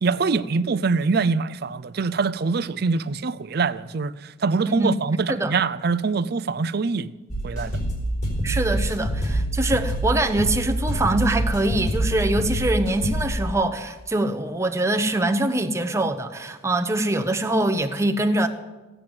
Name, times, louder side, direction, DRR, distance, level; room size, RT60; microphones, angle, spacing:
voice 1, 0.0-7.1 7.4-7.8, right 4 dB, 55° right, 0.5 m, -24 dB
sound 1, 7.3-13.3, right 1 dB, 40° left, 4.0 m, -26 dB
voice 2, 8.4-18.5, right 1 dB, 15° right, 0.9 m, -23 dB
16.0 x 9.0 x 7.8 m
head